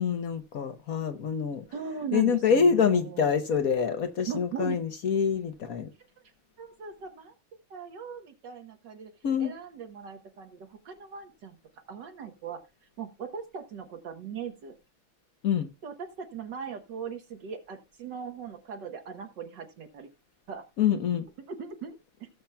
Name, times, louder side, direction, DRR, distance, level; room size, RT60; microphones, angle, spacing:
voice 1, 0.0-1.6 2.1-5.9 9.2-9.5 15.4-15.7 20.8-21.3, left 7 dB, 55° left, 1.1 m, -26 dB
voice 2, 1.7-3.3 4.3-4.8 6.6-7.3 7.7-9.1 9.4-11.6 11.9-12.6 13.0-14.7 15.8-20.1 20.5-20.7 21.5-22.3, right 7 dB, 65° right, 1.7 m, -39 dB
17.0 x 7.1 x 2.2 m
omnidirectional pair, 2.2 m